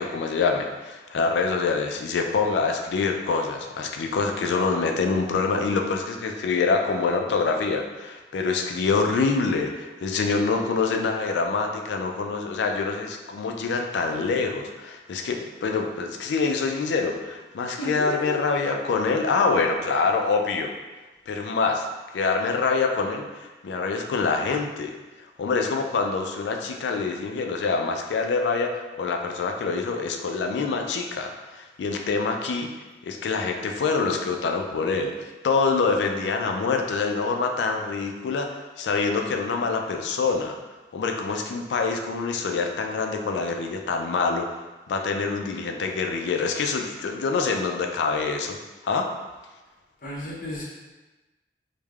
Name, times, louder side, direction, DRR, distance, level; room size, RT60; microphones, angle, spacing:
voice 1, 0.0-20.7 21.3-21.9 22.1-24.9 25.4-32.7 33.0-40.5 40.9-44.6 44.9-48.6 48.8-49.1, left 4 dB, 80° left, 3 dB, 0.3 m, -25 dB
voice 2, 17.8-18.4 50.0-50.6, equal, 45° left, -6 dB, 0.7 m, -33 dB
3.2 x 2.1 x 2.3 m, 1.2 s
head